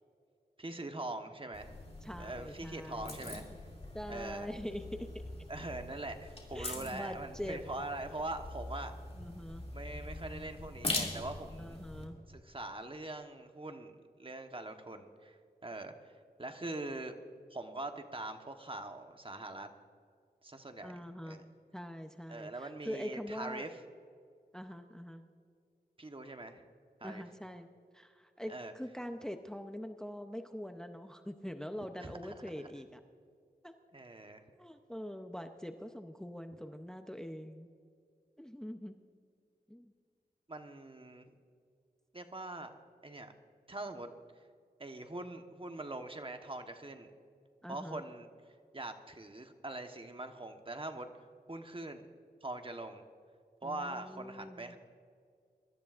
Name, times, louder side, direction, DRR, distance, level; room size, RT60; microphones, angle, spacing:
voice 1, 0.6-1.7 2.2-3.4 4.1-4.5 5.5-8.9 9.7-11.8 12.3-16.1 16.4-17.1 17.5-19.7 20.4-20.9 21.2-21.4 22.3-23.7 26.0-26.6 27.0-27.2 28.5-28.7 32.0-32.7 33.9-34.4 40.5-41.3 42.1-42.7 43.0-43.3 43.7-44.1 44.8-47.1 47.7-48.3 48.7-51.1 51.5-52.1 52.4-53.0 53.6-54.8, right 2 dB, 35° right, 5 dB, 1.2 m, -43 dB
sound 1, 1.5-12.0, left 2 dB, 40° left, 2.7 m, -43 dB
voice 2, 2.0-3.4 3.9-5.1 6.5-7.6 9.1-9.6 11.6-12.2 20.8-21.4 21.7-23.7 24.5-25.2 27.0-27.7 27.9-33.0 33.6-33.7 34.6-37.7 38.4-39.0 39.7-39.9 47.6-48.0 53.6-54.8, equal, 5° left, 6 dB, 0.7 m, -43 dB
23.0 x 13.5 x 2.5 m, 2.2 s
wide cardioid pair, 60°, 17 cm